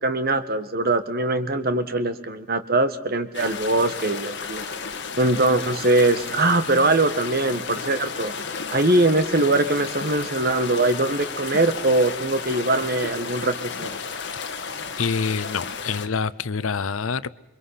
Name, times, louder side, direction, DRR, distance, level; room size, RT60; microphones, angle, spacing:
voice 1, 0.0-4.6 5.2-8.3 8.7-14.0, right 2 dB, 50° right, 10 dB, 1.5 m, -22 dB
sound 1, 3.3-16.1, left 5 dB, 60° left, 1.8 m, -33 dB
voice 2, 15.0-17.3, left 5 dB, 85° left, 16 dB, 0.7 m, -26 dB
28.0 x 23.5 x 5.8 m, 1.0 s
head